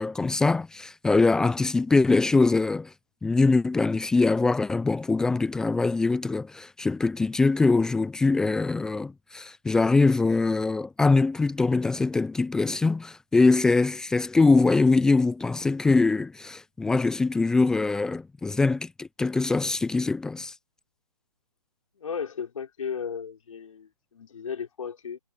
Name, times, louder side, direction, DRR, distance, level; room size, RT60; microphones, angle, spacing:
voice 1, 0.0-2.9 3.2-20.5, left 3 dB, 5° left, 0.7 m, -23 dB
voice 2, 21.9-25.2, left 6 dB, 55° left, 5.7 m, -35 dB
figure-of-eight pair, 150°, 20 cm